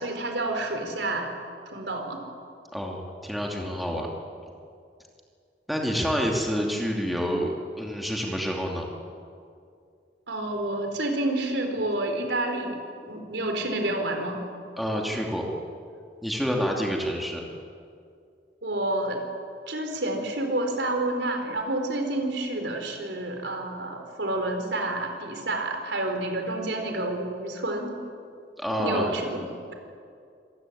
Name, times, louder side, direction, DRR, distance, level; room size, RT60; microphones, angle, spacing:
voice 1, 0.0-1.3 1.7-2.2 10.3-12.8 13.1-14.4 18.6-19.2 19.7-28.0 28.8-29.4, right 1 dB, 80° right, 4 dB, 4.2 m, -29 dB
voice 2, 2.7-4.1 5.7-8.9 14.8-15.5 16.2-17.4 28.6-29.1, equal, ahead, 0 dB, 2.7 m, -28 dB
26.0 x 15.5 x 9.9 m, 2.4 s
head